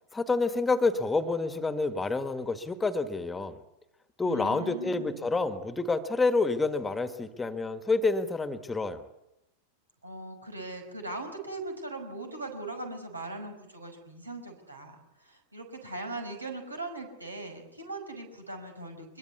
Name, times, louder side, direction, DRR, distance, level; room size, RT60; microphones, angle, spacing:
voice 1, 0.1-3.6 4.2-9.1, left 3 dB, 10° left, 11 dB, 1.6 m, -28 dB
voice 2, 4.2-5.4 10.0-19.2, right 2 dB, 80° right, 4 dB, 5.7 m, -40 dB
24.5 x 22.0 x 8.4 m, 0.88 s
figure-of-eight pair, 90°, 0 cm